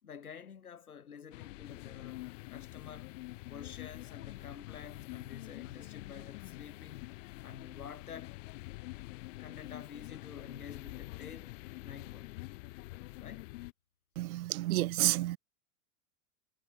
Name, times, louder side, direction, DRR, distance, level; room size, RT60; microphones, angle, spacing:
voice 1, 0.0-3.1 3.5-7.0 7.4-8.4 9.4-12.4 13.2-13.5, left 7 dB, 90° left, 5.3 m, -49 dB
sound 1, 1.3-13.7, left 21 dB, 60° left, 1.0 m, -46 dB
voice 2, 14.2-15.4, right 16 dB, 75° right, 0.6 m, -30 dB
hypercardioid pair, 100°, 42 cm